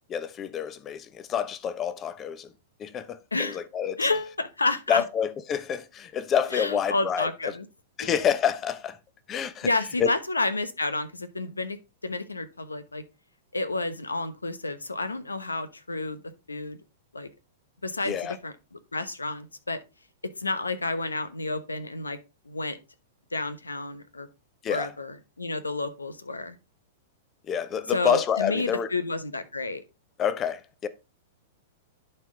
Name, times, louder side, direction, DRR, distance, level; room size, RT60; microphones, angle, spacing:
voice 1, 0.1-2.5 2.8-4.1 4.9-7.6 8.0-9.0 9.3-9.7 10.0-10.1 18.0-18.4 24.6-24.9 27.5-28.9 30.2-30.9, left 8 dB, 25° left, 0.8 m, -28 dB
voice 2, 3.3-3.6 4.0-5.0 6.5-7.7 8.0-8.1 9.6-11.8 12.0-13.0 13.5-16.2 16.5-16.8 17.1-17.3 17.8-18.2 18.4-18.5 18.9-19.8 20.4-22.2 22.5-22.8 23.3-24.3 24.7-26.6 27.9-29.8, left 3 dB, 85° left, 1.0 m, -30 dB
11.0 x 4.5 x 3.8 m
figure-of-eight pair, 100°, 0 cm